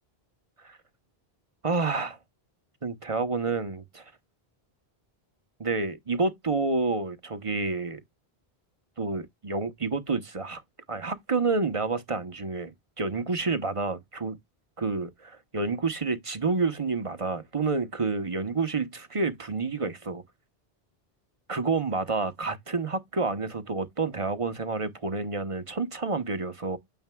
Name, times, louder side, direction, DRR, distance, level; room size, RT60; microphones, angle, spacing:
voice 1, 1.6-2.2 2.8-4.0 5.6-8.0 9.0-10.6 10.9-14.4 14.8-20.2 21.5-26.8, right 3 dB, 35° right, 0.9 m, -29 dB
9.2 x 7.1 x 2.2 m
omnidirectional pair, 1.0 m